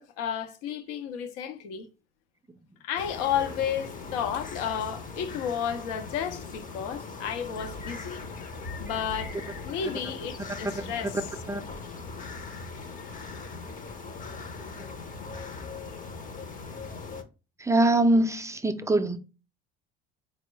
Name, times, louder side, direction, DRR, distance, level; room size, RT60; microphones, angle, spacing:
voice 1, 0.0-1.9 2.8-8.2 8.7-9.4 9.6-11.2, left 8 dB, 70° left, 0.7 m, -32 dB
sound 1, 3.0-17.2, left 4 dB, 25° left, 0.7 m, -40 dB
voice 2, 17.6-19.2, right 2 dB, 10° right, 0.5 m, -23 dB
4.3 x 2.1 x 4.2 m
hypercardioid pair, 65°, 30 cm